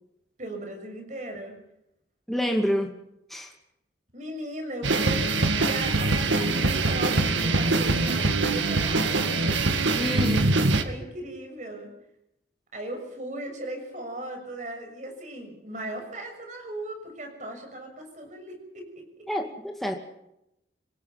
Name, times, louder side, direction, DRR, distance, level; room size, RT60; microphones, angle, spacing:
voice 1, 0.4-1.5 4.1-9.4 10.8-11.9 12.7-18.9, right 1 dB, 40° right, 4 dB, 6.5 m, -37 dB
voice 2, 2.3-3.0 3.3-3.5 10.0-10.5 19.3-19.9, equal, ahead, 2 dB, 2.3 m, -28 dB
sound 1, 4.8-10.8, right 3 dB, 90° right, 2.0 m, -23 dB
27.5 x 18.5 x 5.9 m, 0.82 s
head